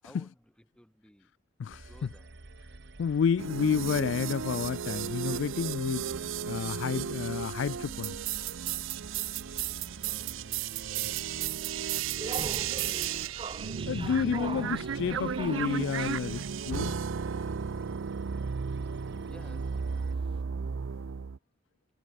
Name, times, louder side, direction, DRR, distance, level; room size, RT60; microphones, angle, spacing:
voice 1, 0.0-1.3 1.8-2.3 10.0-12.0 19.2-19.8, equal, 5° left, 5.7 m, -57 dB
sound 1, 1.7-20.1, right 2 dB, 60° right, 1.3 m, -50 dB
voice 2, 3.0-8.1 13.9-16.4 16.7-16.9, left 6 dB, 65° left, 0.3 m, -30 dB
sound 2, 3.4-21.4, right 7 dB, 80° right, 0.5 m, -34 dB
sound 3, 12.1-20.4, right 3 dB, 25° right, 0.5 m, -43 dB
head